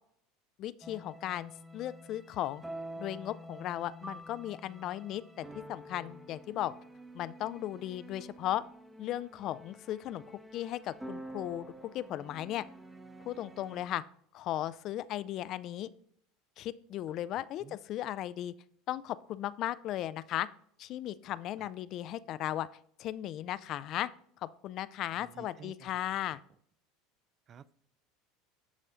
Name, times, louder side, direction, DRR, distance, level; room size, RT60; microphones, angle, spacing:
voice 1, 0.6-2.6 3.0-6.7 7.1-8.6 9.0-10.2 10.5-12.6 13.3-14.0 14.3-15.9 16.6-18.5 18.9-20.5 20.8-22.7 23.0-24.1 24.4-26.4, left 13 dB, 50° left, 16 dB, 0.3 m, -36 dB
sound 1, 0.8-13.9, right 1 dB, 10° right, 0.9 m, -48 dB
voice 2, 17.3-17.8 21.6-21.7 25.1-25.9 27.5-27.7, right 7 dB, 40° right, 19 dB, 0.3 m, -53 dB
12.0 x 4.2 x 2.5 m, 0.65 s
hypercardioid pair, 80°, 0 cm